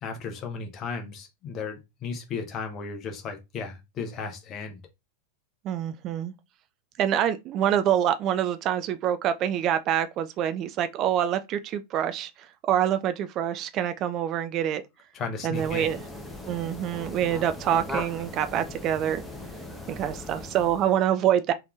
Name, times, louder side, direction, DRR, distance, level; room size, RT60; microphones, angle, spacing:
voice 1, 0.0-4.8 15.1-15.9, left 5 dB, 30° left, 0.9 m, -35 dB
voice 2, 5.6-6.3 7.0-14.8 15.4-16.0 16.5-19.2 19.9-21.5, right 10 dB, 35° right, 0.3 m, -26 dB
sound 1, 15.5-21.0, left 1 dB, 5° left, 0.8 m, -39 dB
3.4 x 3.1 x 2.4 m
figure-of-eight pair, 90°, 0 cm